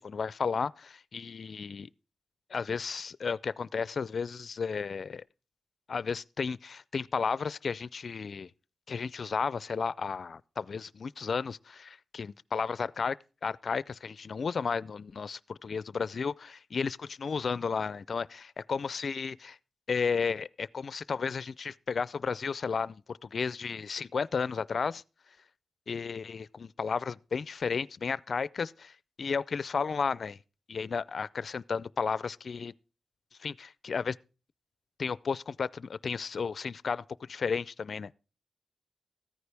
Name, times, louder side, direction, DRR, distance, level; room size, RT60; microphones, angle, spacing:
voice 1, 0.0-1.9 2.5-5.2 5.9-8.5 8.9-13.2 13.4-19.6 19.9-25.0 25.9-30.4 30.7-32.7 33.4-34.2 35.0-38.1, left 5 dB, 55° left, 0.4 m, -33 dB
14.5 x 9.6 x 3.4 m
wide cardioid pair, 110°, 0 cm